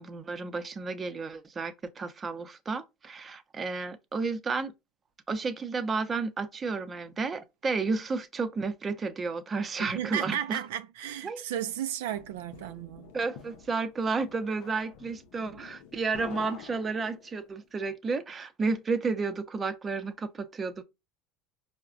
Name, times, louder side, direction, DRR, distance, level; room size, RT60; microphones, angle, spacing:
voice 1, 0.0-4.7 5.3-10.6 11.2-11.4 13.1-20.8, right 4 dB, 25° right, 0.6 m, -32 dB
voice 2, 9.8-13.1, right 11 dB, 85° right, 0.3 m, -34 dB
sound 1, 11.7-17.5, left 7 dB, 80° left, 0.5 m, -48 dB
4.6 x 2.1 x 2.4 m
supercardioid pair, 100°, 0 cm